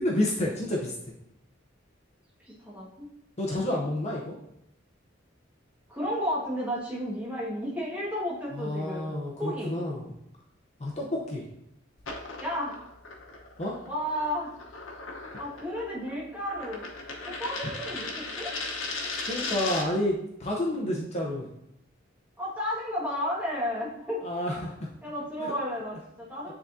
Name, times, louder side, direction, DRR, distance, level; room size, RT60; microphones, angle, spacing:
voice 1, 0.0-1.1 3.4-4.3 8.5-10.0 10.8-11.5 13.6-13.8 19.3-21.5 24.2-24.9 25.4-25.5 26.5-26.6, left 1 dB, 35° left, -2 dB, 0.7 m, -30 dB
voice 2, 2.4-3.1 5.9-9.1 9.4-9.7 12.4-12.8 13.9-14.5 15.4-16.9 17.2-18.5 22.4-24.2 25.0-26.5, equal, 10° right, -6 dB, 1.7 m, -32 dB
sound 1, 12.0-20.0, left 3 dB, 70° left, 1.0 m, -37 dB
9.6 x 3.6 x 2.7 m, 0.79 s
head